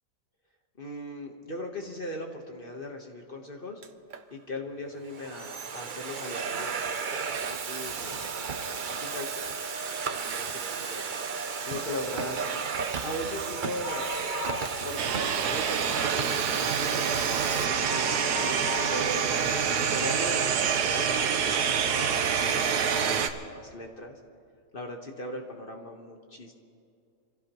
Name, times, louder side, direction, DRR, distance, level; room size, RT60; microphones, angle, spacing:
voice 1, 0.8-3.8 4.3-9.6 10.0-11.0 11.6-12.4 13.0-14.1 14.4-18.2 18.9-24.2 24.7-26.5, left 1 dB, 35° left, 2 dB, 1.4 m, -39 dB
Domestic sounds home sounds, 3.8-4.2 4.9-17.6, right 6 dB, 50° right, 0.5 m, -33 dB
sound 1, 13.8-15.3 15.6-15.7 16.2-20.6 21.1-21.2 22.0-22.1 22.3-22.4, left 10 dB, 60° left, 0.6 m, -40 dB
sound 2, 15.0-23.3, right 7 dB, 90° right, 1.4 m, -26 dB
26.0 x 16.0 x 3.1 m, 2.4 s
omnidirectional pair, 1.7 m